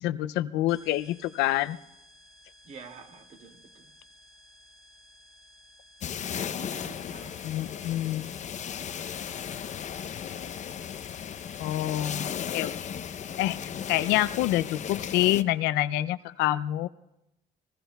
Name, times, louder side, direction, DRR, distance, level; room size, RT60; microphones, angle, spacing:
voice 1, 0.0-1.8 7.4-8.3 11.6-12.7 13.4-16.9, left 14 dB, 90° left, 0.5 m, -27 dB
sound 1, 0.7-12.1, equal, 5° left, 2.2 m, -56 dB
voice 2, 2.6-3.9 6.2-8.4, right 4 dB, 50° right, 2.4 m, -49 dB
sound 2, 6.0-15.4, left 8 dB, 45° left, 0.7 m, -36 dB
28.5 x 21.0 x 2.3 m
cardioid pair, 110°, 17 cm